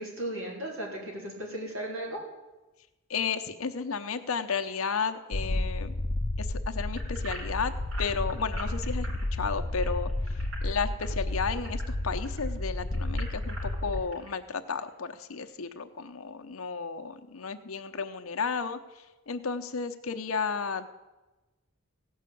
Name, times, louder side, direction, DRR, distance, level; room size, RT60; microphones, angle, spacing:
voice 1, 0.0-2.2, right 1 dB, 70° right, -1 dB, 4.0 m, -36 dB
voice 2, 3.1-5.9 6.4-20.9, left 5 dB, 85° left, 7 dB, 0.8 m, -33 dB
sound 1, 5.3-14.0, left 1 dB, 25° left, 0.6 m, -32 dB
sound 2, 6.9-12.4 12.9-14.3 14.8-14.9 15.4-15.5, right 2 dB, 90° right, 4.9 m, -44 dB
16.0 x 5.6 x 8.4 m, 1.1 s
head